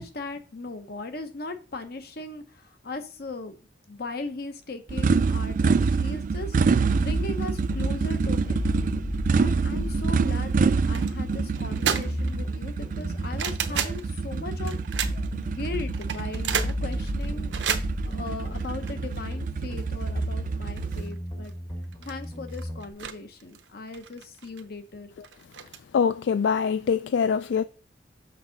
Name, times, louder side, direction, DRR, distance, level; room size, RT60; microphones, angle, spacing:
voice 1, 0.0-3.6 3.9-6.5 6.9-8.7 9.3-14.7 15.3-17.5 18.0-21.5 22.0-25.1, left 3 dB, 60° left, 0.9 m, -38 dB
sound 1, 4.9-21.0, right 4 dB, 50° right, 0.3 m, -27 dB
sound 2, 6.9-22.9, left 1 dB, 30° left, 1.1 m, -34 dB
sound 3, 10.9-11.2 11.5-12.4 12.7-14.0 14.7-15.4 15.9-19.3 19.8-19.9 20.2-20.3 20.8-21.2 21.4-21.5 21.8-23.1 23.4-24.6 25.2-25.8, right 8 dB, 90° right, 0.7 m, -32 dB
voice 2, 25.9-27.6, left 6 dB, 80° left, 0.3 m, -24 dB
6.1 x 6.0 x 3.9 m
head